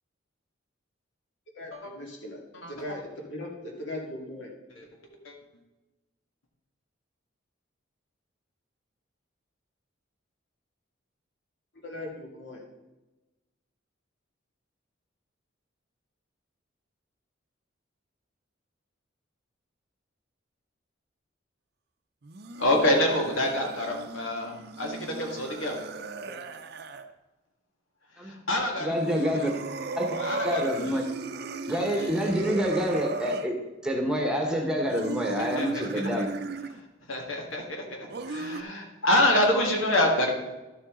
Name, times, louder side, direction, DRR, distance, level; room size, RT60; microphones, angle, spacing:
voice 1, 1.5-2.4 2.7-4.5 11.8-12.6 26.3-26.5, left 1 dB, 65° left, -1 dB, 2.3 m, -39 dB
sound 1, 22.2-27.1 28.9-33.5 34.9-36.8 38.1-38.6, right 3 dB, 50° right, 0.6 m, -36 dB
voice 2, 22.6-25.8 28.2-29.5 30.2-31.0 31.7-32.1 35.4-35.7 35.9-36.2 37.1-40.3, left 1 dB, 85° left, 1 dB, 1.8 m, -27 dB
voice 3, 28.8-29.5 30.0-30.1 30.4-31.0 31.7-33.6 33.8-36.3, equal, 5° right, 1 dB, 1.2 m, -27 dB
12.0 x 7.4 x 3.8 m, 1.1 s
head